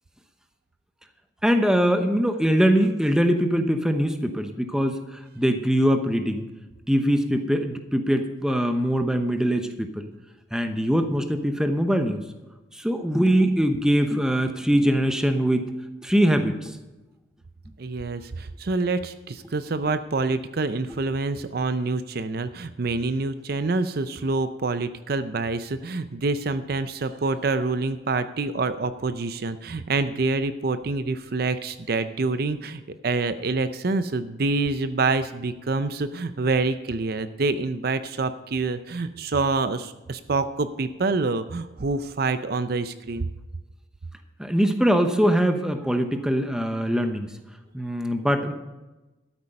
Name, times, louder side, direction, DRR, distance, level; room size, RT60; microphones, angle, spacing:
voice 1, 1.4-6.4 6.9-10.1 10.5-12.3 12.7-15.7 16.0-16.8 20.9-21.0 44.4-47.3 47.7-48.5, equal, 5° right, 6 dB, 0.9 m, -22 dB
voice 2, 17.8-43.3, right 3 dB, 55° right, 12 dB, 0.5 m, -26 dB
12.5 x 8.8 x 5.3 m, 1.1 s
head